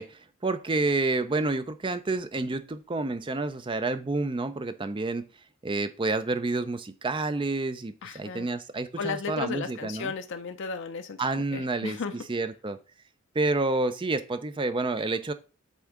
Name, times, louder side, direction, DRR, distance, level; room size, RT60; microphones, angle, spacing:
voice 1, 0.0-5.3 5.6-10.1 11.2-12.8 13.3-15.3, right 3 dB, 20° right, 11 dB, 0.4 m, -29 dB
voice 2, 8.0-8.5 9.0-12.1, left 5 dB, 55° left, 7 dB, 0.5 m, -35 dB
8.0 x 3.7 x 3.7 m, 0.33 s
head